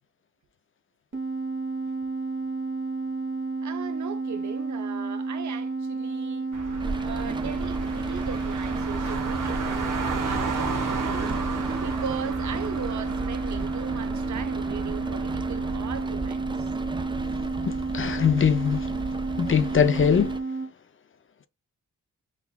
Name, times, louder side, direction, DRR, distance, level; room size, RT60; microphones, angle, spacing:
sound 1, 1.1-20.7, right 3 dB, 40° right, 1.0 m, -31 dB
voice 1, 3.6-6.5 7.0-11.4 11.8-16.7, right 7 dB, 65° right, 0.7 m, -38 dB
Car, 6.5-16.1, right 4 dB, 85° right, 1.1 m, -34 dB
Rain, 6.8-20.4, right 3 dB, 15° right, 0.3 m, -35 dB
voice 2, 17.6-18.9 19.3-20.4, left 7 dB, 40° left, 0.5 m, -22 dB
5.8 x 2.3 x 2.2 m
cardioid pair, 80°, 31 cm